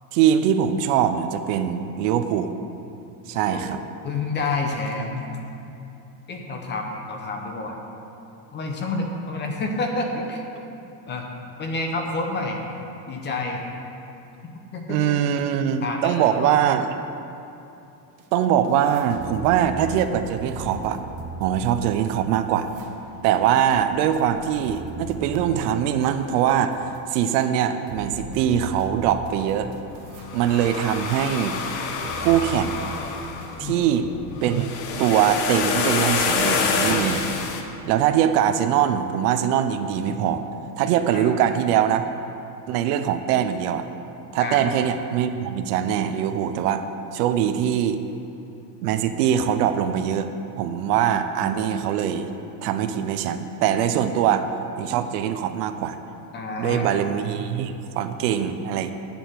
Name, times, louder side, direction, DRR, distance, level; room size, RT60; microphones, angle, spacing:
voice 1, 0.1-2.5 3.3-3.8 14.9-16.9 18.3-21.0 21.4-22.7 23.2-26.8 27.1-29.7 30.3-31.6 32.2-32.8 33.6-34.1 34.4-34.7 35.0-37.2 37.8-40.4 40.8-42.0 42.7-43.9 44.3-46.9 47.1-48.0 48.8-50.3 50.6-52.3 52.6-54.5 54.8-56.0 56.6-58.9, right 9 dB, 70° right, 9 dB, 0.8 m, -22 dB
voice 2, 3.3-5.4 6.3-7.8 8.5-10.4 11.1-11.3 11.6-12.6 13.1-13.6 14.7-15.1 15.8-16.5 33.6-33.9 41.1-41.3 44.4-44.6 56.3-56.9, left 3 dB, 20° left, 2 dB, 0.8 m, -29 dB
sound 1, 18.2-18.3 18.6-27.0 27.4-27.5 27.9-30.3 30.7-33.9, right 3 dB, 45° right, 1.0 m, -39 dB
sound 2, 29.4-37.6, left 5 dB, 80° left, 1.3 m, -27 dB
8.8 x 7.0 x 7.6 m, 2.8 s
cardioid pair, 165°, 49 cm